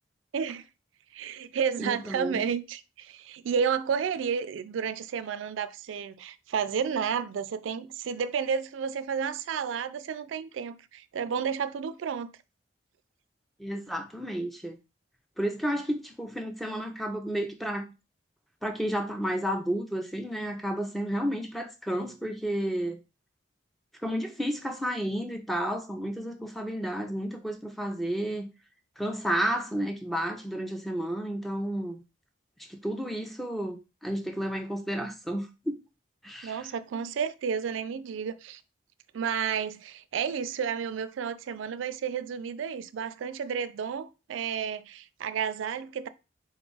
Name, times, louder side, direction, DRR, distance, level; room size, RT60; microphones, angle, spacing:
voice 1, 0.3-0.6 1.1-12.3 36.4-38.6 39.1-46.1, right 7 dB, 90° right, 0.3 m, -31 dB
voice 2, 1.8-2.4 13.6-14.8 15.4-17.9 18.6-23.0 24.0-28.5 29.0-32.0 32.7-35.8 36.2-36.7, equal, ahead, 0.4 m, -31 dB
4.0 x 2.4 x 3.8 m
head